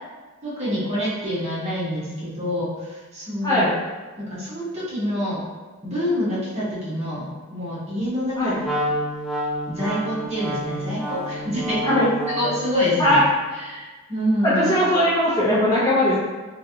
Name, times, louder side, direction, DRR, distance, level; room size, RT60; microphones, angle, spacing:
voice 1, 0.4-3.7 4.3-5.4 5.8-7.2 7.5-8.6 9.7-12.0 12.3-13.2 13.5-14.7, equal, 30° right, -10 dB, 1.2 m, -26 dB
Wind instrument woodwind instrument, 8.6-12.7, equal, ahead, 0.3 m, -29 dB
voice 2, 14.4-16.2, left 1 dB, 15° left, -10 dB, 0.7 m, -19 dB
3.0 x 2.5 x 2.8 m, 1.3 s
head